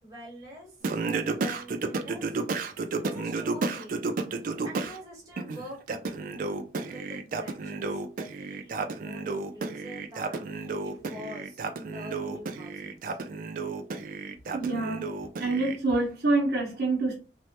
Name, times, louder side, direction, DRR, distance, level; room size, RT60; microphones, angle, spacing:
voice 1, 0.0-2.3 3.0-4.1 4.6-6.3 6.9-13.2, equal, 20° right, 1.3 m, -46 dB
Singing, 0.8-5.0 5.4-15.8, right 3 dB, 50° right, 0.4 m, -32 dB
voice 2, 14.5-15.1 15.4-17.1, right 2 dB, 65° right, 0.8 m, -26 dB
3.1 x 2.1 x 2.9 m
head